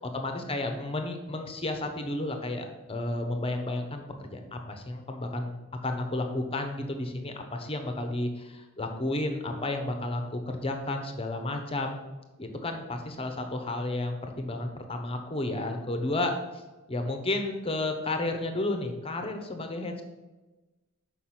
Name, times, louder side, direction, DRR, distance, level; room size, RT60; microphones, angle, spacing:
voice 1, 0.0-12.0 12.4-16.6 16.9-20.0, left 2 dB, 25° left, 5 dB, 0.9 m, -32 dB
6.6 x 5.1 x 5.8 m, 1.1 s
head